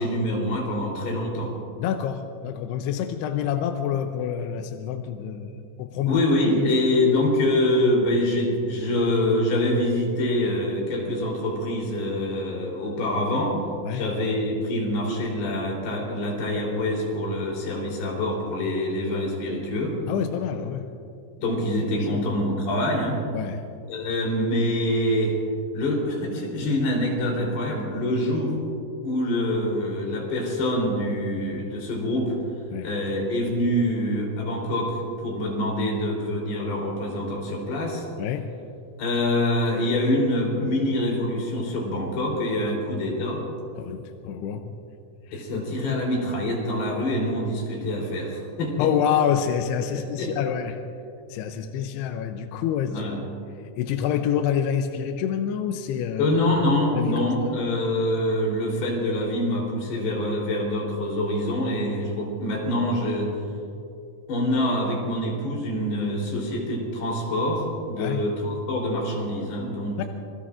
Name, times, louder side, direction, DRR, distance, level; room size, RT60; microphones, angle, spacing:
voice 1, 0.0-1.5 6.1-13.6 13.9-20.0 21.4-23.2 23.9-25.4 25.7-28.6 29.0-32.4 32.8-38.1 39.0-43.4 45.3-48.9 50.0-50.3 52.9-53.2 56.2-63.4 64.3-70.1, left 1 dB, 65° left, -2 dB, 5.5 m, -25 dB
voice 2, 1.8-6.2 6.6-6.8 13.8-14.0 20.1-20.9 22.0-22.2 23.3-23.7 32.7-32.9 38.2-38.5 43.8-44.7 45.3-46.0 48.8-50.8 51.3-53.1 53.6-56.3 57.0-57.6 68.0-68.2 70.0-70.1, left 9 dB, 80° left, 6 dB, 2.6 m, -27 dB
26.5 x 21.5 x 2.5 m, 2.5 s
omnidirectional pair, 5.1 m